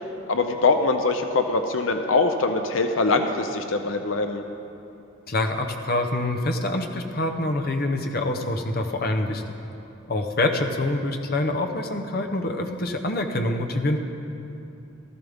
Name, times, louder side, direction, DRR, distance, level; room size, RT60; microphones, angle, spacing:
voice 1, 0.3-4.4, left 3 dB, 80° left, 6 dB, 0.7 m, -23 dB
voice 2, 5.3-9.4 10.1-14.0, left 2 dB, 50° left, 4 dB, 0.8 m, -26 dB
15.5 x 13.5 x 3.5 m, 2.7 s
head